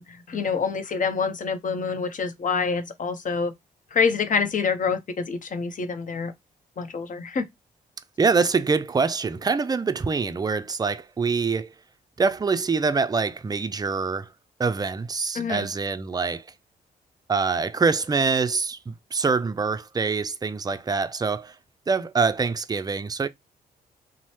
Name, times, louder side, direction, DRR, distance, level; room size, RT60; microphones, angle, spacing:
voice 1, 0.0-3.5 3.9-6.3 6.8-7.5 15.3-15.7, left 5 dB, 45° left, 0.7 m, -26 dB
voice 2, 8.2-11.7 12.2-14.3 14.6-16.5 17.3-21.6 21.9-23.3, right 4 dB, 20° right, 0.4 m, -25 dB
2.6 x 2.0 x 3.1 m
supercardioid pair, 50°, 18 cm